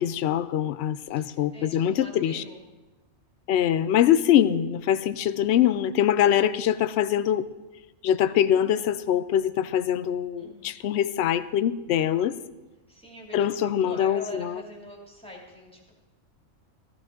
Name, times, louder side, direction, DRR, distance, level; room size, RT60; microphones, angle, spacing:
voice 1, 0.0-2.4 3.5-7.5 8.0-12.4 13.3-14.6, left 10 dB, 65° left, 15 dB, 0.7 m, -23 dB
voice 2, 1.1-2.6 10.4-10.7 12.9-15.9, equal, 5° left, -1 dB, 2.5 m, -44 dB
14.5 x 14.5 x 3.8 m, 1.1 s
omnidirectional pair, 1.4 m